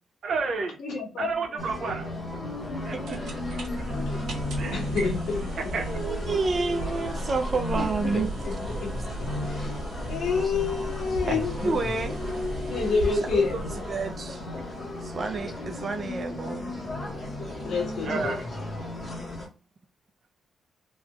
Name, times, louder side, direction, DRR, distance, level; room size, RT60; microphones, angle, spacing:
voice 1, 0.2-0.8 1.2-2.1 2.8-3.2 4.6-4.8 5.7-5.8 18.0-18.4, right 4 dB, 55° right, 0.9 m, -30 dB
voice 2, 0.8-1.6 3.9-4.3 4.6-5.5 6.0-6.1 7.8-8.5 8.8-9.8 10.1-11.7 12.6-13.7 17.6-18.4, left 5 dB, 70° left, 1.1 m, -29 dB
sound 1, 1.6-19.5, left 1 dB, 25° left, 1.1 m, -34 dB
sound 2, 2.6-14.4, right 1 dB, 90° right, 1.2 m, -36 dB
voice 3, 5.9-8.3 11.3-12.2 13.3-14.4 15.0-16.7 19.2-19.4, right 4 dB, 30° right, 0.4 m, -30 dB
3.2 x 2.3 x 3.0 m
wide cardioid pair, 175°, 0 cm